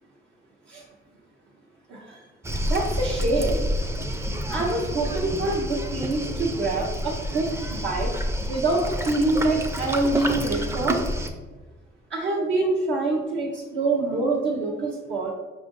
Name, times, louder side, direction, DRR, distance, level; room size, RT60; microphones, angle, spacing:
Waves surf, 2.4-11.3, equal, 15° right, 0.4 m, -29 dB
voice 1, 2.5-3.6 4.5-8.1 8.5-11.0 12.1-15.3, right 2 dB, 70° right, -4 dB, 0.8 m, -25 dB
5.2 x 2.5 x 3.6 m, 1.2 s
cardioid pair, 90°, 20 cm